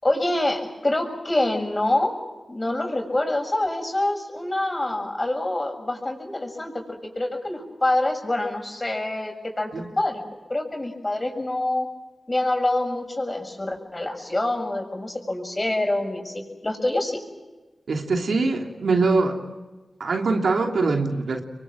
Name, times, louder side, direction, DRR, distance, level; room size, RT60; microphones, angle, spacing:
voice 1, 0.0-2.2 2.5-10.2 10.5-11.9 12.3-17.2, left 1 dB, 30° left, 3 dB, 7.1 m, -26 dB
voice 2, 17.9-19.4 20.0-21.4, right 3 dB, 80° right, 3 dB, 3.1 m, -23 dB
28.0 x 23.5 x 7.6 m, 1.2 s
cardioid pair, 45°, 0 cm